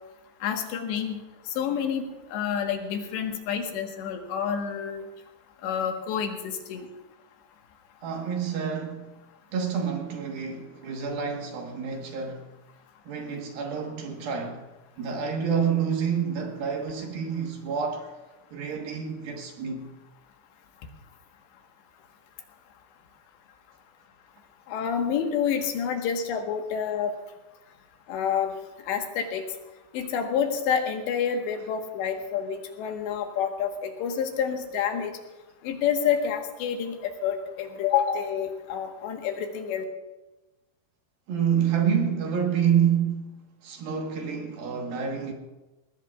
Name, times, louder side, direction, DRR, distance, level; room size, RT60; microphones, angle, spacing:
voice 1, 0.4-1.2 1.6-2.0 2.3-5.0 5.6-6.9 24.7-27.1 28.1-28.5 28.9-29.4 29.9-35.1 35.6-39.8, left 7 dB, 80° left, 3.6 m, -28 dB
voice 2, 8.0-9.1 9.5-12.5 13.1-14.6 15.0-18.1 18.5-19.9 41.3-43.3 43.6-45.3, right 7 dB, 65° right, 2.9 m, -28 dB
21.5 x 18.5 x 2.4 m
omnidirectional pair, 5.0 m